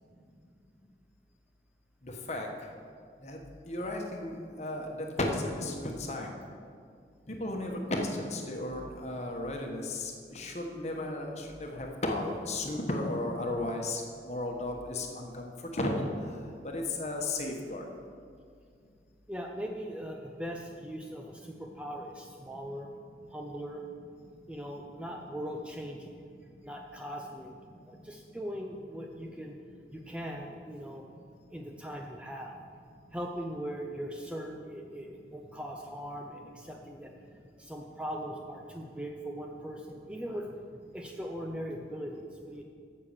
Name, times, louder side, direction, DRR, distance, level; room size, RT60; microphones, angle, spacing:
voice 1, 3.7-4.9 5.2-5.7 6.0-6.3 7.3-14.0 14.3-16.0 16.7-17.8, left 2 dB, 40° left, 2 dB, 1.2 m, -34 dB
voice 2, 19.3-22.9 23.3-23.8 24.5-26.2 26.6-27.5 27.9-29.6 29.9-31.0 31.5-32.6 33.1-37.1 37.6-40.5 40.9-42.2 42.4-42.6, equal, 5° right, 1 dB, 0.5 m, -40 dB
9.2 x 6.7 x 7.3 m, 2.2 s
head